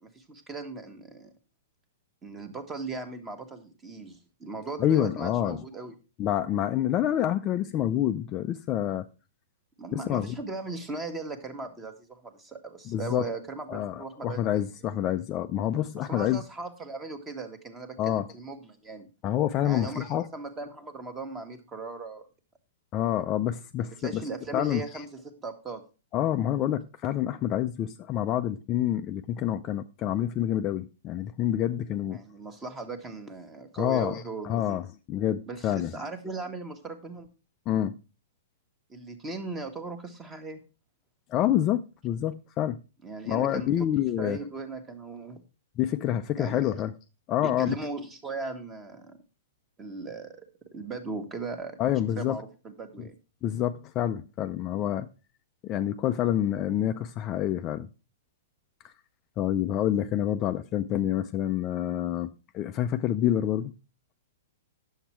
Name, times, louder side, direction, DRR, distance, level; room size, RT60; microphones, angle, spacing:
voice 1, 0.0-1.3 2.2-5.9 9.8-14.4 16.0-19.1 19.6-20.1 20.3-22.3 24.0-25.8 32.1-34.8 35.5-37.3 38.9-40.6 43.0-43.7 44.2-45.4 46.4-46.7 47.4-49.2 49.8-50.5 50.7-51.8 52.2-53.2, right 3 dB, 15° right, 1.3 m, -38 dB
voice 2, 4.8-5.6 6.2-9.1 9.9-10.4 12.9-13.3 13.7-16.4 18.0-18.3 19.2-20.3 22.9-24.2 24.5-25.0 26.1-32.2 33.8-35.9 37.7-38.0 41.3-42.8 43.3-44.4 45.8-46.9 47.3-47.8 51.8-52.4 53.0-53.1 53.4-55.1 55.6-57.9 59.4-63.7, left 11 dB, 25° left, 0.4 m, -27 dB
10.0 x 7.2 x 4.4 m
hypercardioid pair, 160°, 0 cm